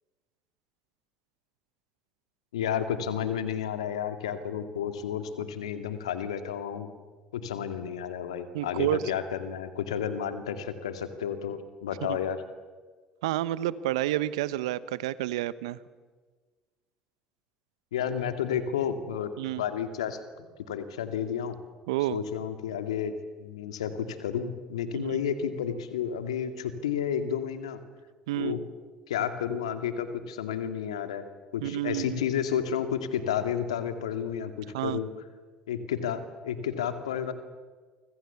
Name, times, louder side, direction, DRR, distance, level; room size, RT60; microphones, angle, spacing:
voice 1, 2.5-6.9 7.3-12.4 17.9-21.6 22.1-27.8 28.4-28.6 29.1-31.3 31.5-35.1 35.7-37.3, left 8 dB, 80° left, 8 dB, 2.4 m, -31 dB
voice 2, 8.5-9.0 12.1-12.2 13.2-15.8 19.4-19.6 21.9-22.2 24.9-25.2 28.3-28.6 31.6-32.2 34.7-35.0, right 15 dB, 75° right, 17 dB, 1.0 m, -29 dB
29.0 x 25.5 x 7.1 m, 1.4 s
hypercardioid pair, 60°, 3 cm